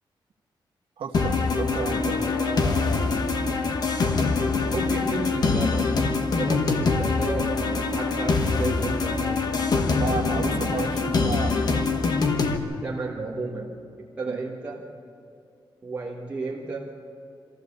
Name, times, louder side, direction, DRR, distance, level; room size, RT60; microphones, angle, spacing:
voice 1, 1.0-2.3 9.9-11.6 14.2-14.4, right 5 dB, 85° right, 3 dB, 1.8 m, -32 dB
sound 1, 1.1-12.6, left 4 dB, 50° left, 1.2 m, -24 dB
voice 2, 2.1-3.2 4.7-9.7 12.6-14.9 15.8-17.0, right 3 dB, 15° right, -5 dB, 1.4 m, -33 dB
25.5 x 15.0 x 7.0 m, 2.5 s
wide cardioid pair, 180°, 9 cm